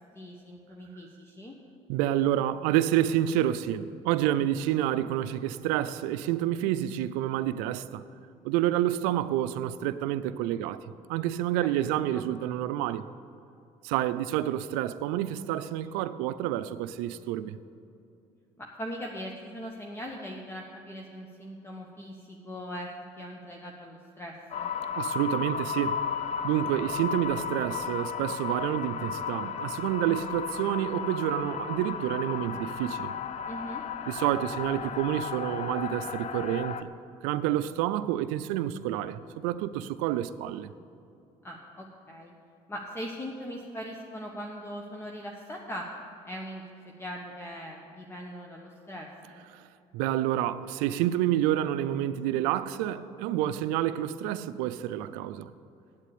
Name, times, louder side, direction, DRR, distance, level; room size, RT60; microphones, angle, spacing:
voice 1, 0.1-1.5 12.1-12.2 18.6-22.9 23.2-24.7 33.4-33.8 41.4-42.3 42.7-45.9 46.2-46.7 47.0-49.4, equal, 20° left, 1.0 m, -40 dB
voice 2, 1.9-8.0 8.4-10.8 11.1-13.1 13.8-17.6 25.0-26.1 26.4-33.1 34.1-36.9 37.2-40.7 49.9-55.5, right 12 dB, 90° right, 0.4 m, -28 dB
sound 1, 24.5-36.8, left 7 dB, 50° left, 0.6 m, -34 dB
8.4 x 8.2 x 8.5 m
supercardioid pair, 85°, 14 cm